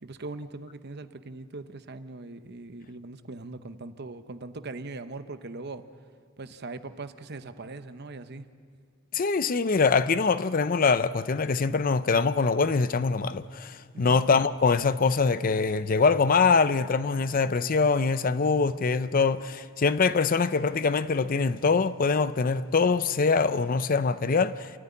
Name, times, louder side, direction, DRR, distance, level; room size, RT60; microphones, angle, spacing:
voice 1, 0.0-5.9 6.4-8.5 13.9-14.2, right 3 dB, 50° right, 0.9 m, -40 dB
voice 2, 9.1-24.7, left 4 dB, 40° left, 0.5 m, -24 dB
27.5 x 13.5 x 9.7 m
head